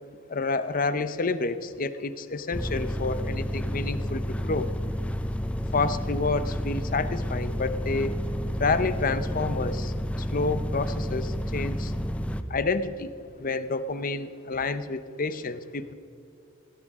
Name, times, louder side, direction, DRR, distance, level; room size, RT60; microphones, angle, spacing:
voice 1, 0.3-4.7 5.7-8.2 8.6-11.9 12.5-15.9, left 3 dB, 45° left, 12 dB, 0.8 m, -29 dB
sound 1, 2.5-12.4, equal, 5° left, 0.6 m, -30 dB
20.0 x 17.0 x 3.7 m, 2.6 s
head